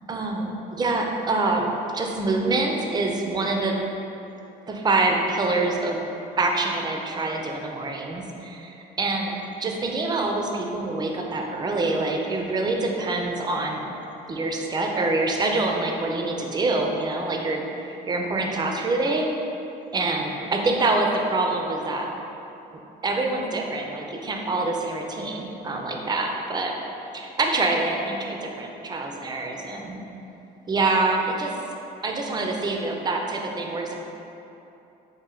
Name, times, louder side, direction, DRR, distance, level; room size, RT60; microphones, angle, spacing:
voice 1, 0.1-3.8 4.7-6.0 6.4-9.3 9.6-13.9 14.3-17.7 18.1-19.3 19.9-22.1 23.0-26.7 27.1-30.0 30.7-31.5 32.0-33.9, right 2 dB, 25° right, 1 dB, 0.5 m, -25 dB
4.3 x 2.7 x 3.8 m, 2.9 s
cardioid pair, 110°, 17 cm